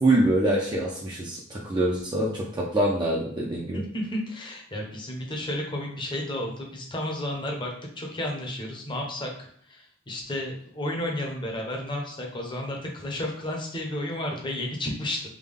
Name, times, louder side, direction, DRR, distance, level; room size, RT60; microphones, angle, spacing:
voice 1, 0.0-3.8, right 1 dB, 20° right, -4 dB, 0.5 m, -25 dB
voice 2, 3.7-7.7 8.0-9.3 9.7-15.3, left 1 dB, 25° left, 0 dB, 0.8 m, -32 dB
3.6 x 2.2 x 3.4 m, 0.65 s
head